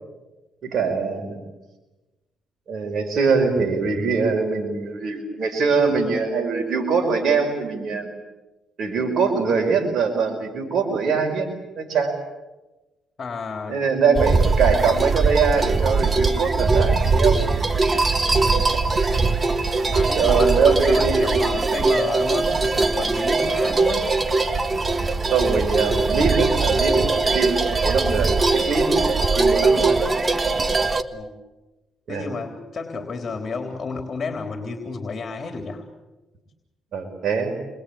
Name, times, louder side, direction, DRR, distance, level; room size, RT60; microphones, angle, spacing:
voice 1, 0.6-1.4 2.7-8.1 8.8-11.5 11.8-12.2 13.7-17.7 20.2-21.5 25.3-30.0 32.1-32.3 36.9-37.5, right 5 dB, 60° right, 2 dB, 5.2 m, -23 dB
voice 2, 13.2-13.9 19.9-24.1 25.9-26.0 31.1-31.3 32.1-35.8, left 4 dB, 40° left, 4 dB, 3.7 m, -31 dB
sound 1, 14.1-31.0, right 3 dB, 25° right, 1.6 m, -21 dB
29.0 x 23.0 x 8.7 m, 1.1 s
cardioid pair, 90°, 0 cm